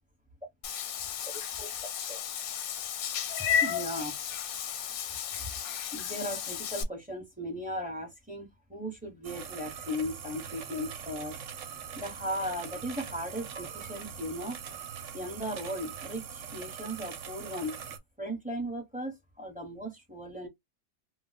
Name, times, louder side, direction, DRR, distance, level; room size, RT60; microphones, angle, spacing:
Meow / Water / Bathtub (filling or washing), 0.6-6.8, left 8 dB, 85° left, 1.1 m, -33 dB
voice 1, 3.6-4.2 5.9-11.4 11.9-14.6 15.1-17.8 18.2-20.5, equal, 5° right, 0.7 m, -37 dB
sound 1, 9.2-18.0, right 7 dB, 70° right, 0.9 m, -42 dB
2.3 x 2.1 x 3.9 m
omnidirectional pair, 1.5 m